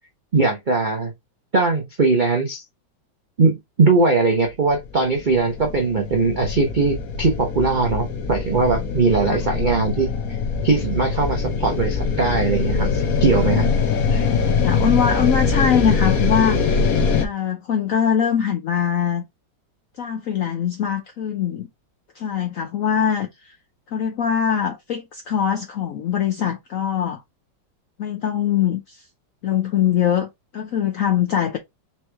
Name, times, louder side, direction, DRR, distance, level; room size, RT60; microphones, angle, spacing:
voice 1, 0.3-1.1 1.5-2.6 3.4-10.4 10.6-13.7 14.1-14.3, right 4 dB, 65° right, 0.4 m, -20 dB
sound 1, 4.7-17.3, left 5 dB, 55° left, 1.2 m, -23 dB
voice 2, 14.5-16.7 17.2-19.2 20.0-21.7 22.2-23.5 23.9-27.2 28.0-29.0 29.4-30.3 30.5-31.6, left 8 dB, 75° left, 0.7 m, -22 dB
4.4 x 3.1 x 3.3 m
omnidirectional pair, 2.1 m